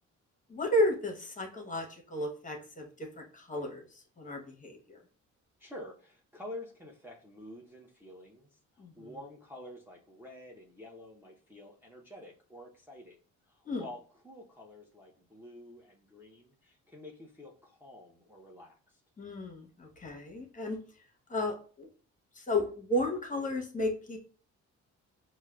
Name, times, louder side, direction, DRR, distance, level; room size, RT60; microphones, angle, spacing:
voice 1, 0.5-5.0 8.8-9.1 13.6-13.8 19.2-20.8 21.3-21.9 22.4-24.2, left 1 dB, 25° left, 2 dB, 0.9 m, -33 dB
voice 2, 5.6-13.2 13.5-19.0, left 1 dB, 5° right, -3 dB, 0.6 m, -49 dB
4.5 x 2.2 x 2.2 m, 0.41 s
cardioid pair, 90°, 30 cm